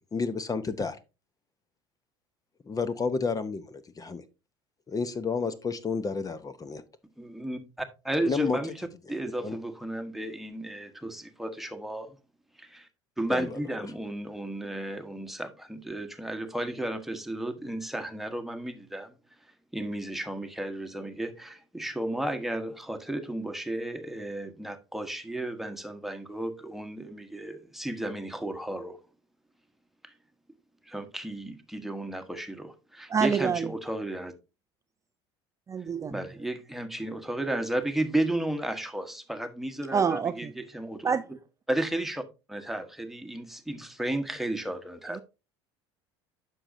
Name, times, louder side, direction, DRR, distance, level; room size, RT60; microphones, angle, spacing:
voice 1, 0.1-1.0 2.7-4.2 4.9-6.8 8.2-8.7 9.4-9.6 13.3-13.6, left 4 dB, 25° left, 0.8 m, -31 dB
voice 2, 7.2-8.7 9.1-12.2 12.6-12.9 13.2-19.1 19.7-29.0 30.0-30.1 30.9-34.3 36.1-41.1 41.7-42.2 42.5-45.2, right 1 dB, ahead, 1.2 m, -33 dB
voice 3, 33.1-33.7 35.7-36.2 39.9-40.5 41.0-41.2 45.1-45.2, right 6 dB, 20° right, 0.4 m, -27 dB
9.8 x 6.2 x 2.6 m
hypercardioid pair, 70°, 14 cm